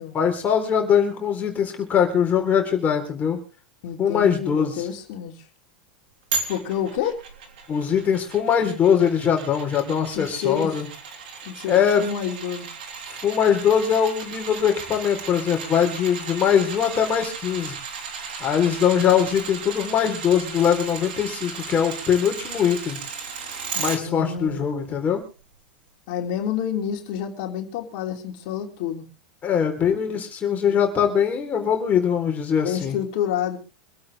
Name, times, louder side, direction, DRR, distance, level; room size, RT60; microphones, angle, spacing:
voice 1, 0.1-3.4 4.0-4.7 7.7-10.9 11.6-12.0 13.2-17.8 18.4-23.0 23.8-25.2 29.4-32.9, left 8 dB, 30° left, 3 dB, 3.9 m, -21 dB
voice 2, 3.8-5.3 6.5-7.2 10.1-10.8 11.4-12.7 18.9-19.2 23.7-24.6 26.1-29.1 32.6-33.6, left 9 dB, 60° left, 3 dB, 3.1 m, -29 dB
sound 1, 6.3-24.0 24.4-24.5, right 5 dB, 80° right, 3.4 m, -35 dB
26.0 x 8.8 x 3.5 m, 0.35 s
supercardioid pair, 115°, 5 cm